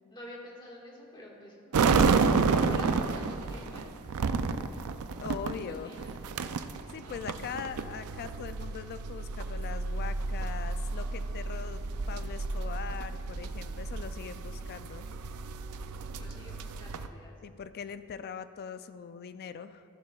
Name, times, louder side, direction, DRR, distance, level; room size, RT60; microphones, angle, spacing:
voice 1, 0.1-1.9 2.1-3.9 5.4-6.1 7.0-7.2 16.2-17.3, left 1 dB, 20° left, -3 dB, 1.7 m, -48 dB
sound 1, 1.7-17.1, right 4 dB, 80° right, 0.4 m, -31 dB
voice 2, 5.1-6.0 6.9-15.1 17.4-19.8, left 7 dB, 45° left, 12 dB, 0.3 m, -41 dB
14.0 x 11.0 x 2.4 m, 2.4 s
head